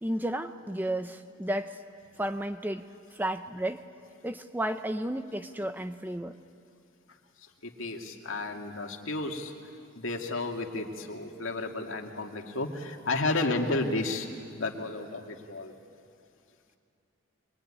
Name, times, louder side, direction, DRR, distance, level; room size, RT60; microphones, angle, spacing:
voice 1, 0.0-1.8 2.2-3.9 4.2-6.4, right 1 dB, 10° right, 9 dB, 0.6 m, -33 dB
voice 2, 7.6-9.5 10.0-14.3 14.6-15.7, left 2 dB, 65° left, 3 dB, 2.2 m, -32 dB
24.0 x 22.5 x 9.9 m, 2.5 s
head